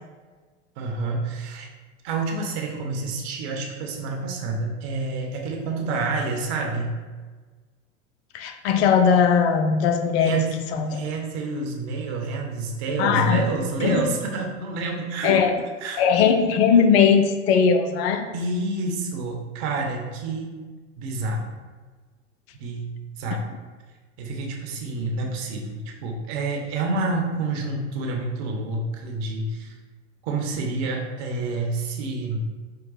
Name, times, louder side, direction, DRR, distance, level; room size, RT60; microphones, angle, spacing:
voice 1, 0.8-1.7 2.0-7.0 10.2-10.6 10.9-15.4 15.8-16.0 18.3-20.5 21.0-21.5 22.5-23.4 24.2-29.7 30.2-32.4, right 3 dB, 60° right, 1 dB, 1.0 m, -28 dB
voice 2, 8.3-10.4 10.7-11.0 13.0-13.4 13.8-14.0 15.2-15.5 16.0-18.3, left 6 dB, 60° left, 7 dB, 0.6 m, -19 dB
4.8 x 2.2 x 4.0 m, 1.4 s
hypercardioid pair, 90°, 37 cm